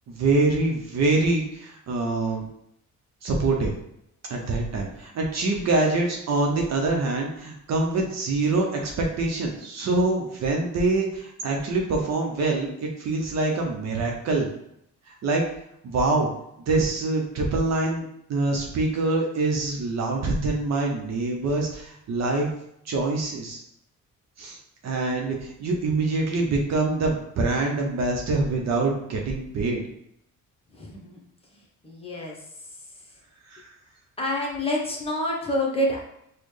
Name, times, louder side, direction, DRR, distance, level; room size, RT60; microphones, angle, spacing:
voice 1, 0.1-2.4 3.2-3.7 4.3-8.9 9.2-14.5 15.1-15.4 15.8-16.3 16.7-22.5 22.9-23.6 24.4-24.6 24.8-29.8 33.5-33.7, right 3 dB, 60° right, 1 dB, 0.8 m, -25 dB
voice 2, 30.7-31.2 31.8-32.4 34.2-36.0, equal, 20° left, -2 dB, 1.0 m, -27 dB
4.2 x 2.2 x 3.2 m, 0.77 s
cardioid pair, 90°, 30 cm